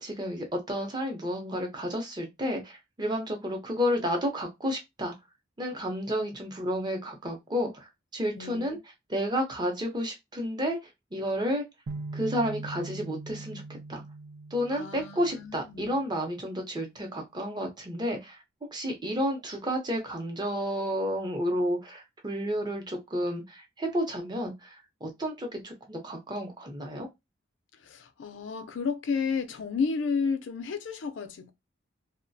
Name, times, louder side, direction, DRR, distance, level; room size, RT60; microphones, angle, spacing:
voice 1, 0.0-5.1 5.6-8.8 9.1-10.8 11.1-11.6 12.1-13.6 13.9-14.0 14.5-18.4 18.7-27.1, equal, 25° right, 0.6 m, -31 dB
voice 2, 8.4-8.8 14.7-16.0 27.8-31.5, left 5 dB, 90° left, 0.4 m, -32 dB
sound 1, 11.9-15.9, right 3 dB, 60° right, 0.4 m, -41 dB
2.3 x 2.1 x 2.6 m
head